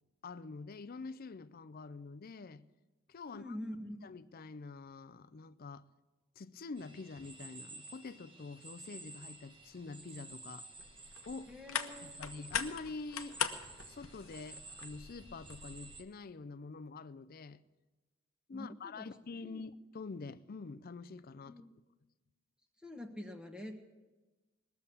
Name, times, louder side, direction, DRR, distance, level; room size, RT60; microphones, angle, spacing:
voice 1, 0.2-2.6 3.1-3.6 4.0-5.9 6.4-10.7 11.3-11.5 12.0-13.4 13.8-17.6 18.5-21.6, left 3 dB, 45° left, 0.5 m, -46 dB
voice 2, 3.3-4.0 11.5-12.4 18.5-19.1 19.4-19.6 21.4-21.7 22.8-23.7, left 1 dB, 5° right, 1.4 m, -46 dB
sound 1, 6.8-16.0, right 3 dB, 25° right, 1.1 m, -53 dB
sound 2, 10.8-16.0, left 8 dB, 80° left, 0.9 m, -41 dB
20.0 x 7.1 x 8.3 m
head